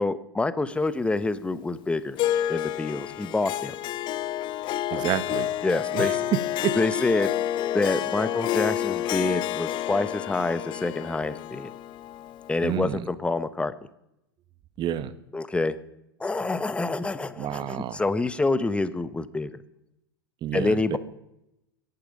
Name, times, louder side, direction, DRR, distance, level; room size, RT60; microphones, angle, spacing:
voice 1, 0.0-2.2 2.5-3.7 4.9-5.2 5.6-6.2 6.7-7.3 7.7-11.7 12.5-13.7 15.3-15.8 16.2-19.6 20.5-21.0, left 3 dB, 10° left, 14 dB, 1.0 m, -27 dB
Harp, 2.2-12.8, left 12 dB, 40° left, 0.7 m, -29 dB
voice 2, 4.9-5.5 5.9-6.8 12.6-13.0 14.8-15.1 17.4-18.0 20.4-21.0, right 11 dB, 40° right, 14 dB, 1.3 m, -29 dB
23.0 x 11.0 x 5.4 m, 0.85 s
hypercardioid pair, 95°, 12 cm